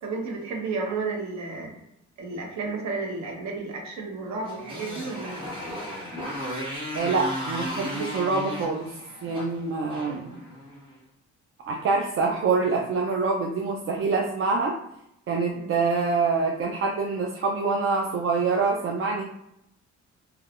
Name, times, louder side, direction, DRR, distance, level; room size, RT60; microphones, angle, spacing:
voice 1, 0.0-1.7 2.2-5.4 15.5-15.8, right 4 dB, 65° right, 0 dB, 0.9 m, -32 dB
Motorcycle, 4.4-10.9, equal, 15° right, 1.3 m, -35 dB
voice 2, 6.9-8.9 9.2-10.4 11.7-14.8 15.3-19.2, right 4 dB, 45° right, 0 dB, 0.4 m, -25 dB
3.2 x 2.2 x 2.4 m, 0.80 s
cardioid pair, 90°, 30 cm